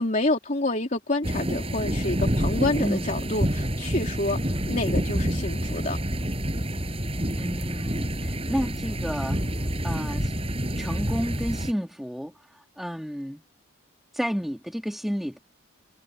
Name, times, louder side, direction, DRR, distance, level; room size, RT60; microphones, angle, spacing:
voice 1, 0.0-6.0, left 2 dB, 35° left, 3.5 m, -28 dB
sound 1, 1.2-11.7, equal, 25° right, 6.8 m, -28 dB
voice 2, 7.4-9.4 9.8-10.3 10.8-13.4 14.1-15.4, equal, ahead, 2.0 m, -31 dB
head